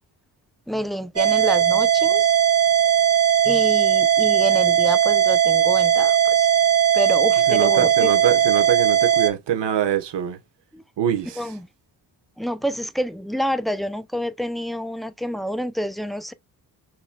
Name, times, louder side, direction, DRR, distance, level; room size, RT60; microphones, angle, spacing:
voice 1, 0.7-2.3 3.4-6.5 6.9-8.1 10.7-10.8 11.4-11.7 12.4-16.3, equal, ahead, 0.5 m, -28 dB
sound 1, 1.2-9.3, right 9 dB, 35° right, 1.5 m, -18 dB
voice 2, 7.5-10.4 11.0-11.5, right 10 dB, 75° right, 1.2 m, -24 dB
6.1 x 3.0 x 2.3 m
cardioid pair, 100°, 43 cm